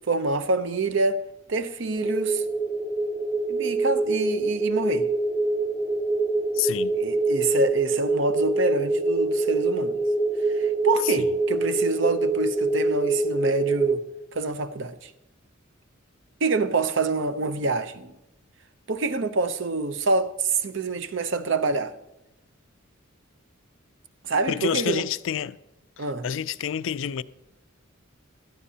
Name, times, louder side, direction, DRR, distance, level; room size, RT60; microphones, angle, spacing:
voice 1, 0.1-1.2 1.5-2.4 3.5-5.1 7.0-10.0 10.5-14.0 14.3-15.1 16.4-18.1 18.9-21.9 24.2-25.0 26.0-26.3, right 3 dB, 65° right, 0.7 m, -26 dB
sound 1, 2.0-14.0, right 2 dB, 15° right, 0.9 m, -25 dB
voice 2, 6.5-7.0 11.0-11.1 24.5-25.6 26.0-27.2, left 9 dB, 65° left, 0.4 m, -28 dB
17.0 x 12.0 x 2.8 m
head